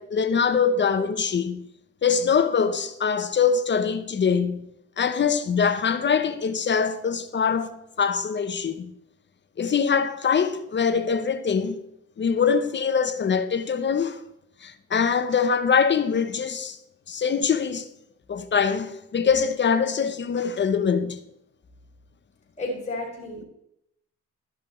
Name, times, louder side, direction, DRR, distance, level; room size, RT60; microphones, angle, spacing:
voice 1, 0.0-1.7 2.0-4.7 5.0-8.9 9.6-11.8 12.2-14.2 14.6-16.8 17.1-17.9 18.3-21.2, left 6 dB, 35° left, 0.8 m, -23 dB
voice 2, 22.6-23.5, left 2 dB, 20° left, 4.1 m, -32 dB
12.5 x 5.9 x 4.4 m
cardioid pair, 90°, 30 cm